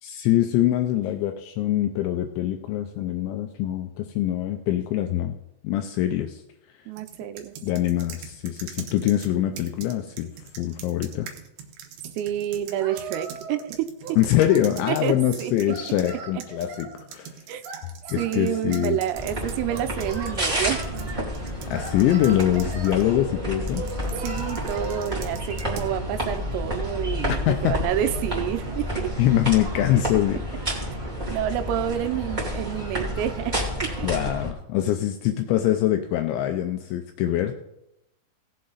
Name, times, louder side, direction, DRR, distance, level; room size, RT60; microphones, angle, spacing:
voice 1, 0.0-5.4 5.6-6.4 7.6-10.3 10.6-11.3 14.2-17.4 18.1-19.0 21.6-23.8 27.5-27.8 29.2-30.6 34.0-37.5, left 12 dB, 85° left, 6 dB, 2.7 m, -24 dB
voice 2, 6.9-7.5 12.2-13.9 14.9-15.8 17.5-17.6 18.2-20.8 24.2-29.1 31.3-34.1, right 11 dB, 90° right, 10 dB, 3.4 m, -29 dB
sound 1, 7.0-16.1 16.4-23.1 23.7-26.0, right 7 dB, 75° right, 3.1 m, -43 dB
Singing, 12.8-13.7 14.0-15.2 15.7-16.9 17.6-18.9 19.7-20.9 21.7-23.0 23.7-25.1, right 4 dB, 60° right, 3.7 m, -38 dB
sound 2, 19.1-34.5, equal, 25° right, 0.9 m, -30 dB
17.0 x 7.6 x 4.0 m, 0.85 s
omnidirectional pair, 5.8 m